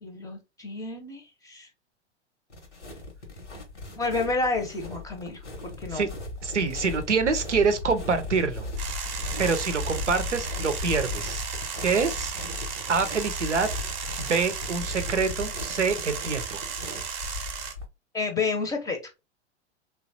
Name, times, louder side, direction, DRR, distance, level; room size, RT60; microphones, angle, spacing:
voice 1, 0.0-1.7 4.0-6.1 18.1-19.0, left 3 dB, 10° left, 0.6 m, -30 dB
sound 1, 2.5-17.9, left 2 dB, 85° left, 1.0 m, -37 dB
voice 2, 6.4-8.6 9.4-11.4 11.8-12.3 12.9-13.7 14.2-16.6, right 5 dB, 90° right, 0.6 m, -26 dB
sound 2, 8.8-17.7, right 7 dB, 30° right, 0.6 m, -35 dB
3.1 x 2.3 x 2.6 m
figure-of-eight pair, 95°, 34 cm